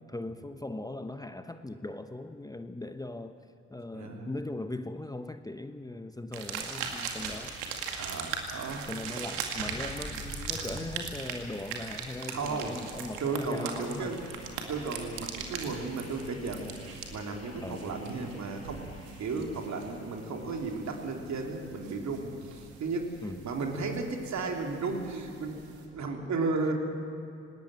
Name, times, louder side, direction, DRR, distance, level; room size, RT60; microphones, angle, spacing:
voice 1, 0.1-3.4 3.7-7.6 8.9-14.2 17.6-18.0 19.3-19.5 23.2-23.4, left 2 dB, 10° left, 9 dB, 1.0 m, -39 dB
voice 2, 3.9-4.3 8.0-8.9 12.3-12.8 13.2-14.2 14.7-16.7 17.1-23.1 23.4-26.7, right 3 dB, 55° right, 2 dB, 3.4 m, -34 dB
sound 1, 6.3-25.9, right 6 dB, 80° right, 2.3 m, -41 dB
sound 2, 9.4-21.3, left 1 dB, 45° left, 5.0 m, -49 dB
19.0 x 18.0 x 9.1 m, 2.7 s
hypercardioid pair, 50°, 34 cm